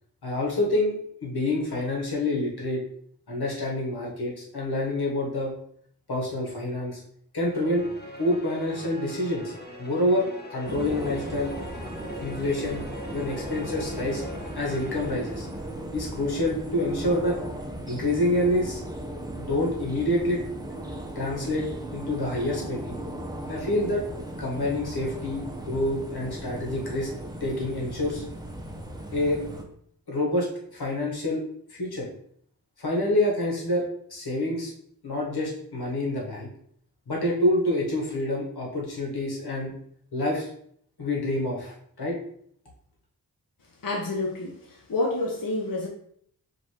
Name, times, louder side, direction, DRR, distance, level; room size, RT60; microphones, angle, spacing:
voice 1, 0.2-2.8 3.3-5.5 6.1-7.0 7.3-7.8 8.2-9.5 9.8-11.5 12.2-14.2 14.5-15.5 15.9-17.4 17.8-18.8 19.4-20.4 21.1-22.9 23.5-24.0 24.4-27.1 27.4-28.2 29.1-29.4 30.1-30.5 30.7-31.4 31.7-32.1 32.8-33.8 34.1-34.7 35.0-36.5 37.1-39.7 40.1-40.5 41.0-42.2, left 1 dB, 90° left, -3 dB, 1.3 m, -27 dB
sound 1, 7.5-16.1, left 1 dB, 25° left, 0.9 m, -43 dB
sound 2, 10.6-29.6, right 1 dB, 10° right, 0.6 m, -37 dB
voice 2, 43.8-45.9, left 2 dB, 65° left, -1 dB, 0.7 m, -28 dB
5.2 x 2.6 x 3.1 m, 0.64 s
wide cardioid pair, 70°, 37 cm